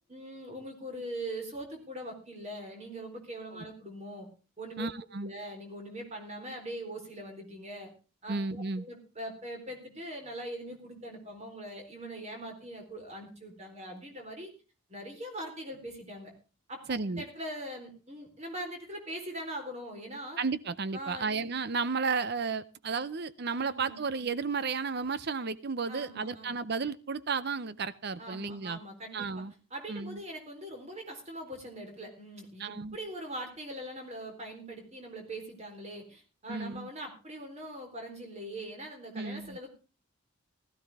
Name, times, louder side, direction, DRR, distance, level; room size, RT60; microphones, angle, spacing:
voice 1, 0.1-4.3 4.6-4.9 5.2-7.9 8.2-14.5 14.9-16.3 16.7-16.8 17.2-20.4 20.9-21.3 23.6-24.0 25.9-26.6 28.2-29.4 29.7-39.8, right 1 dB, 30° right, 4 dB, 3.9 m, -42 dB
voice 2, 4.8-5.3 8.3-8.9 16.9-17.2 20.4-28.8 29.1-29.5 29.9-30.2 32.6-33.0 36.5-36.9 39.1-39.6, right 4 dB, 45° right, 16 dB, 0.6 m, -33 dB
16.0 x 13.5 x 3.5 m, 0.33 s
head